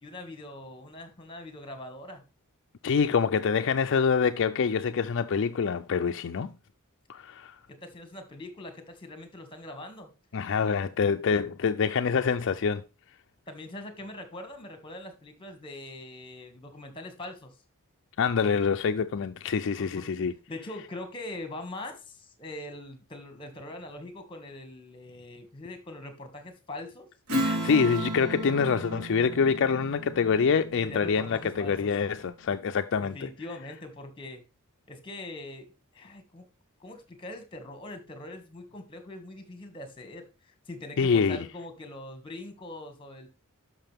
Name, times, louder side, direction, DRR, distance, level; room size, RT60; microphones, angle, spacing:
voice 1, 0.0-2.2 7.7-10.1 13.5-17.5 19.8-20.1 20.5-27.1 30.8-31.9 33.0-34.4 34.9-35.7 35.9-36.5 36.8-43.3, left 1 dB, 25° left, 2.0 m, -42 dB
voice 2, 2.8-6.5 7.1-7.5 10.3-12.8 18.2-20.3 27.4-33.3 41.0-41.5, left 6 dB, 55° left, 0.4 m, -26 dB
Strum, 27.3-32.2, right 1 dB, 85° right, 3.8 m, -34 dB
11.5 x 6.0 x 3.5 m
head